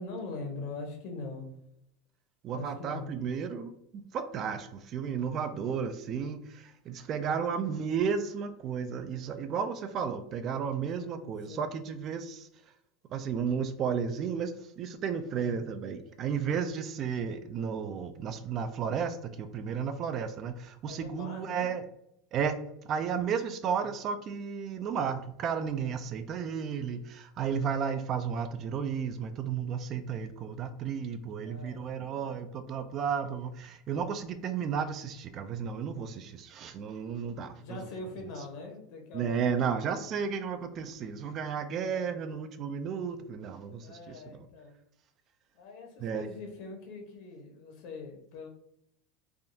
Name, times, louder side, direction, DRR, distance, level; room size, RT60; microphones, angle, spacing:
voice 1, 0.0-1.5 2.5-3.1 7.2-7.6 11.0-11.2 11.5-11.7 15.4-15.6 20.9-21.7 23.8-23.9 31.4-32.4 37.6-40.0 41.9-42.2 43.8-44.7 45.5-48.5, left 3 dB, 65° left, 2 dB, 0.9 m, -43 dB
voice 2, 2.4-12.5 13.1-21.8 22.3-22.6 22.8-37.8 39.1-44.5 46.0-46.2, right 7 dB, 40° right, 9 dB, 0.3 m, -33 dB
3.4 x 2.3 x 2.6 m, 0.74 s
supercardioid pair, 125°, 0 cm